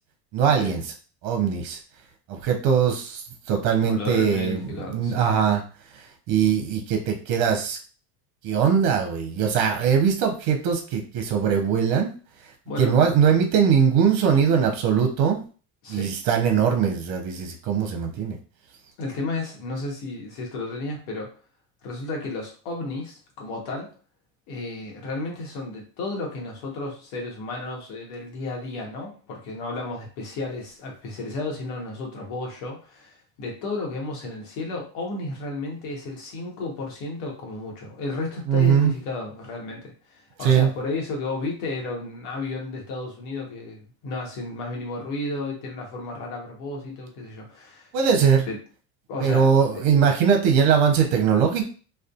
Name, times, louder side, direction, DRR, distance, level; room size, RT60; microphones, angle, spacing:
voice 1, 0.3-0.8 1.2-1.8 2.3-5.6 6.3-7.8 8.4-12.1 12.8-15.4 15.9-18.4 38.5-38.9 40.4-40.7 47.9-48.5 49.2-51.6, right 7 dB, 50° right, 4 dB, 0.7 m, -21 dB
voice 2, 3.8-5.3 12.7-12.9 15.8-16.2 19.0-21.3 21.8-23.9 24.5-47.9 48.5-48.6 49.1-49.5, left 2 dB, 60° left, 0 dB, 1.1 m, -33 dB
2.5 x 2.4 x 2.3 m, 0.38 s
hypercardioid pair, 70°, 49 cm